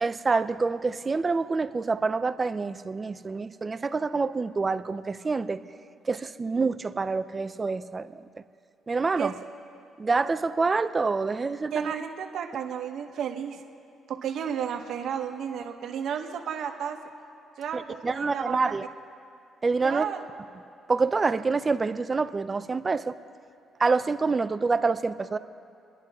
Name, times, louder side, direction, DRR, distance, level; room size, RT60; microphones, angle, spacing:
voice 1, 0.0-5.6 6.1-8.1 8.9-9.3 10.0-11.9 17.7-18.8 19.6-20.0 20.9-23.2 23.8-25.4, right 4 dB, 30° right, 12 dB, 0.5 m, -26 dB
voice 2, 11.7-13.6 14.1-17.0 17.6-18.7 19.8-20.2, right 8 dB, 70° right, 4 dB, 1.2 m, -32 dB
29.0 x 10.5 x 3.6 m, 2.5 s
cardioid pair, 90°, 0 cm